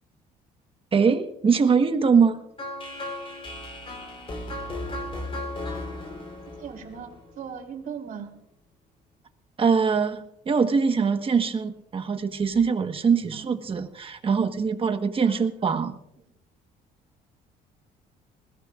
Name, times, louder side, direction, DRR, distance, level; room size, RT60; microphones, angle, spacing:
voice 1, 0.9-2.4 9.6-15.9, right 5 dB, 35° right, 7 dB, 1.3 m, -23 dB
sound 1, 2.6-7.6, left 1 dB, 30° left, 3.6 m, -35 dB
voice 2, 6.6-7.1 7.4-8.3 11.5-11.6 13.3-13.5 15.2-15.4, right 7 dB, 55° right, 2 dB, 3.3 m, -38 dB
20.5 x 16.0 x 2.5 m, 0.84 s
cardioid pair, 110°, 17 cm